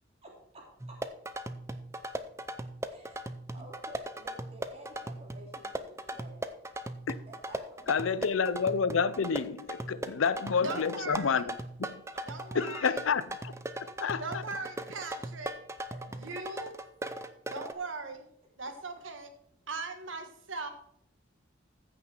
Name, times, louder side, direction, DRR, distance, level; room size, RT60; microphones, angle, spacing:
voice 1, 0.2-1.0 2.9-6.4 7.3-8.3 10.1-10.2 12.1-12.2 15.9-16.2, right 1 dB, 30° right, 3.4 m, -51 dB
sound 1, 0.8-17.7, right 1 dB, 15° right, 0.5 m, -39 dB
voice 2, 7.9-12.0 12.5-13.5 14.0-14.4, left 6 dB, 90° left, 0.5 m, -29 dB
voice 3, 10.6-11.3 12.3-12.9 14.2-15.5 16.2-16.8 17.5-18.3 18.6-19.3 19.7-20.7, right 3 dB, 80° right, 1.5 m, -39 dB
14.5 x 6.3 x 4.4 m
head